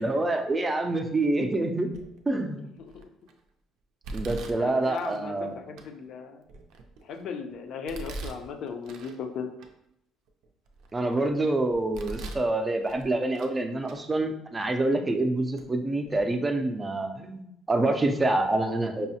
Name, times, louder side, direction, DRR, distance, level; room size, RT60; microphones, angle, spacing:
voice 1, 0.0-1.9 2.3-2.7 4.1-5.6 10.9-19.2, right 2 dB, 20° right, 5 dB, 0.4 m, -27 dB
Domestic sounds home sounds, 1.9-2.3 2.9-3.3 4.0-5.2 5.8-5.9 6.5-7.2 7.9-9.2 9.6-9.7 10.3-11.2 11.7-12.5 12.8-13.6 13.8-14.0 14.8-14.9 15.6-15.7 16.0-16.2, right 2 dB, 75° right, 0.4 m, -41 dB
voice 2, 4.6-6.4 7.0-9.5, left 6 dB, 60° left, 5 dB, 0.5 m, -37 dB
5.3 x 2.0 x 2.7 m, 0.78 s
cardioid pair, 115°, 0 cm